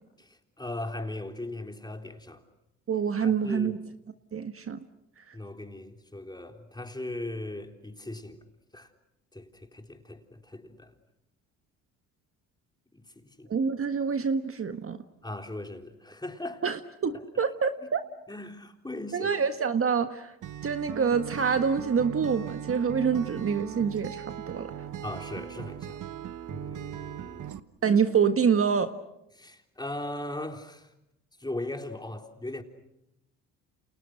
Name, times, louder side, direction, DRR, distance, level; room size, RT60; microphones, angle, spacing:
voice 1, 0.2-2.4 3.2-3.8 5.3-8.4 8.7-8.9 9.3-10.9 12.9-13.5 15.2-16.6 17.1-17.2 18.3-19.3 25.0-26.0 26.5-27.5 29.4-30.9 31.4-32.6, left 2 dB, 10° left, 3.6 m, -38 dB
voice 2, 2.9-3.8 4.3-4.8 5.3-5.4 13.5-15.0 16.6-18.0 19.1-20.3 20.6-24.7 27.8-28.9, right 6 dB, 40° right, 1.5 m, -26 dB
Acoustic guitar, 20.4-27.6, right 10 dB, 60° right, 1.3 m, -38 dB
30.0 x 28.5 x 6.5 m
supercardioid pair, 70°, 35 cm